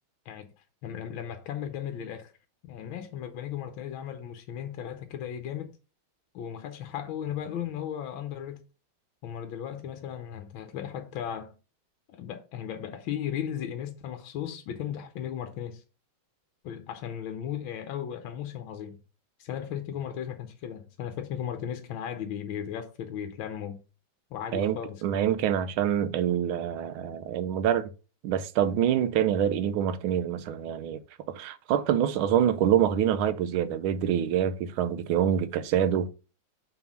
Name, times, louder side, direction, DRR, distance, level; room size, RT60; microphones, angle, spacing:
voice 1, 0.8-2.3 2.6-5.8 6.3-8.6 9.2-11.5 12.1-15.8 16.6-19.0 19.4-23.8 24.3-25.3, left 9 dB, 80° left, 1.6 m, -36 dB
voice 2, 24.5-27.9 28.2-31.0 31.3-36.1, right 9 dB, 85° right, 1.5 m, -26 dB
6.2 x 3.5 x 5.9 m
omnidirectional pair, 2.2 m